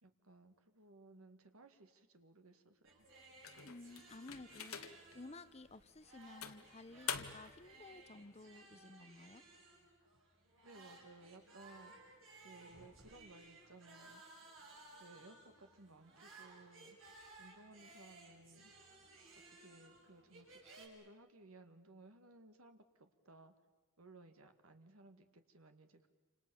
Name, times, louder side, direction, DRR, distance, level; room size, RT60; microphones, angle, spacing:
voice 1, 0.0-3.1 10.6-14.5 15.0-17.0 17.4-18.7 19.4-23.5 24.0-26.1, right 2 dB, 85° right, 7 dB, 2.1 m, -60 dB
sound 1, 2.8-20.9, right 2 dB, 65° right, 7.1 m, -60 dB
sound 2, 3.4-5.2 5.7-5.8 6.4-7.6, left 8 dB, 80° left, 1.8 m, -45 dB
voice 2, 3.6-9.4 9.7-9.8, left 2 dB, 30° left, 13 dB, 0.8 m, -55 dB
29.5 x 27.0 x 7.2 m, 1.3 s
head